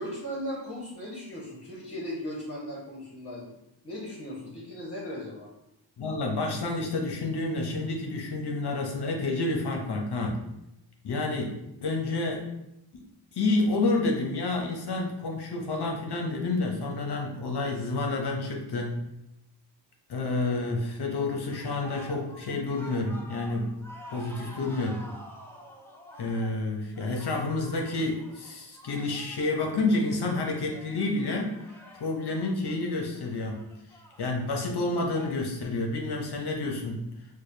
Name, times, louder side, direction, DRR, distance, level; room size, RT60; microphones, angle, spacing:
voice 1, 0.0-3.4 3.8-5.5, equal, 30° left, -6 dB, 1.2 m, -37 dB
voice 2, 6.0-10.5 11.0-12.4 12.9-13.0 13.3-19.0 20.1-23.8 24.1-25.1 26.2-31.5 31.9-33.6 34.2-37.1, left 2 dB, 60° left, 1 dB, 0.8 m, -29 dB
sound 1, 21.5-35.3, equal, 5° left, 0.7 m, -49 dB
4.6 x 2.3 x 2.7 m, 0.84 s
cardioid pair, 50°, 46 cm